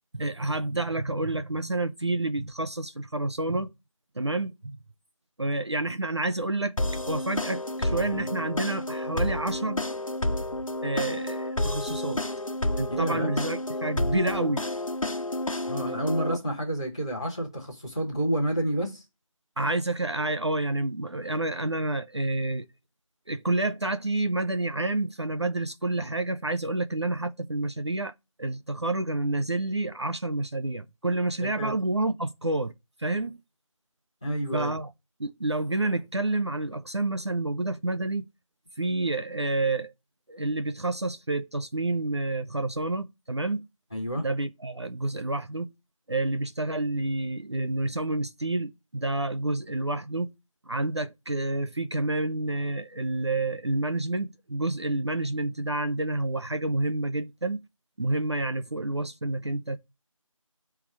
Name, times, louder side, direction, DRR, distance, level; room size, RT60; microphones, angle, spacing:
voice 1, 0.1-3.7 4.2-4.8 5.4-6.7 7.1-9.8 10.8-12.2 12.8-14.6 19.6-22.7 23.3-28.1 28.4-32.7 33.0-33.4 34.5-34.9 35.2-38.3 38.8-39.9 40.3-43.6 44.2-45.7 46.1-50.3 50.7-57.6 58.0-59.8, right 2 dB, 50° right, 0.7 m, -29 dB
sound 1, 6.8-16.4, left 1 dB, 70° left, 1.3 m, -30 dB
voice 2, 12.9-13.3 15.7-19.0 31.6-31.7 34.2-34.7 43.9-44.3, right 1 dB, 10° left, 1.5 m, -29 dB
8.6 x 3.5 x 6.1 m
figure-of-eight pair, 180°, 18 cm